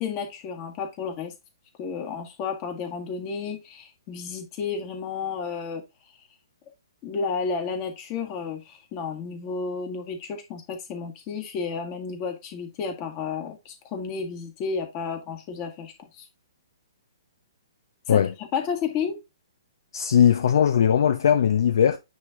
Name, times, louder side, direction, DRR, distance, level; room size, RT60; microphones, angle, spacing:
voice 1, 0.0-1.3 1.8-5.8 7.0-16.2 18.1-19.2, left 5 dB, 30° left, 1.8 m, -32 dB
voice 2, 19.9-22.0, left 8 dB, 60° left, 0.8 m, -19 dB
9.4 x 3.4 x 3.7 m
figure-of-eight pair, 125°, 2 cm